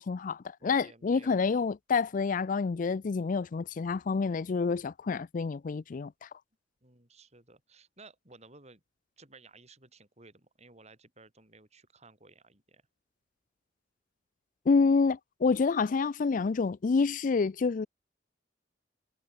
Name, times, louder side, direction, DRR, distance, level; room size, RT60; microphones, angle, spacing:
voice 1, 0.0-6.3 14.7-17.9, left 4 dB, 45° left, 0.4 m, -28 dB
voice 2, 0.6-1.6 6.8-8.8 9.2-12.8, right 3 dB, 35° right, 7.4 m, -56 dB
head